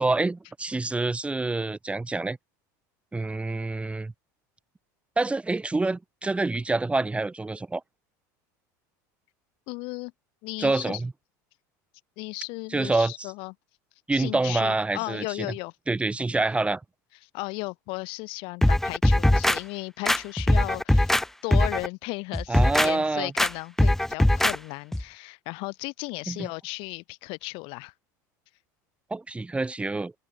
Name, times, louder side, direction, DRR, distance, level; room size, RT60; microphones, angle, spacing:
voice 1, 0.0-2.4 3.1-4.1 5.2-7.8 10.6-11.1 12.7-13.3 14.1-15.5 15.9-16.8 22.5-23.3 26.3-26.5 29.1-30.1, right 3 dB, 10° right, 2.4 m, -27 dB
voice 2, 9.7-10.1 10.4-11.0 12.2-13.5 14.1-15.7 17.2-21.1 21.4-27.9, left 27 dB, 65° left, 4.3 m, -35 dB
sound 1, 18.6-19.6 20.1-21.2 21.5-21.9 22.3-22.9 23.4-23.5 23.8-24.6 24.9-25.0, left 1 dB, 5° left, 0.5 m, -21 dB
open air
supercardioid pair, 95°, 10 cm